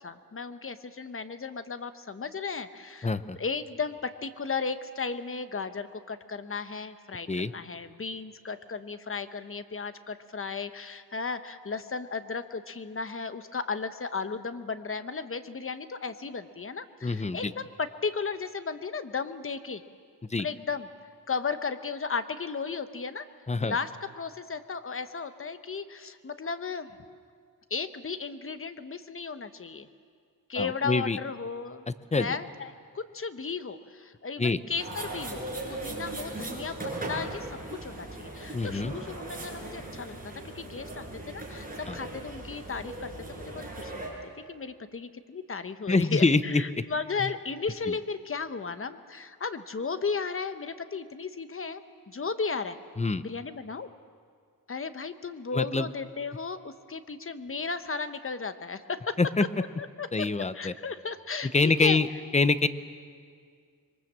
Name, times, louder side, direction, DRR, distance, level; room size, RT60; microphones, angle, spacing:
voice 1, 0.0-19.8 20.4-20.9 21.3-23.3 23.6-23.9 24.2-26.9 27.7-29.9 30.5-31.9 32.2-36.8 37.1-40.1 40.4-52.8 53.2-53.9 54.7-59.2 59.8-60.3 60.5-62.0, left 5 dB, 35° left, 10 dB, 1.0 m, -35 dB
voice 2, 3.0-3.4 7.3-7.5 17.0-17.5 20.3-20.5 23.5-23.7 30.6-31.2 32.1-32.3 34.4-34.6 38.5-38.9 41.9-42.0 45.9-46.6 53.0-53.2 55.5-55.9 59.2-59.4 60.1-60.7 61.5-62.1 62.3-62.7, left 3 dB, 20° left, 13 dB, 0.7 m, -25 dB
sound 1, 34.8-44.1, right 2 dB, 25° right, 6.1 m, -38 dB
26.0 x 23.0 x 7.4 m, 2.1 s
wide cardioid pair, 125°, 36 cm